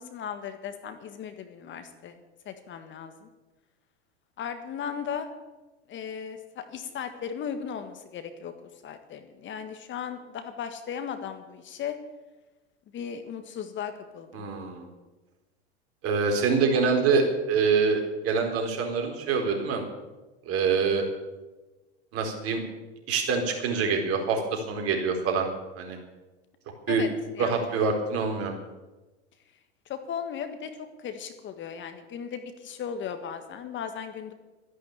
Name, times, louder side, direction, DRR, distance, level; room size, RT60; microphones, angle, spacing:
voice 1, 0.0-2.2 2.4-3.3 4.4-5.3 5.9-8.5 8.8-11.9 12.9-14.5 26.9-27.1 27.3-27.6 29.8-34.3, left 7 dB, 35° left, 8 dB, 1.6 m, -36 dB
voice 2, 14.3-14.8 16.0-19.8 20.5-21.0 22.1-22.6 23.1-25.5 25.8-26.0 26.9-27.0 27.4-28.5, right 5 dB, 45° right, 3 dB, 4.2 m, -25 dB
13.0 x 11.0 x 9.0 m, 1.2 s
hypercardioid pair, 100°, 34 cm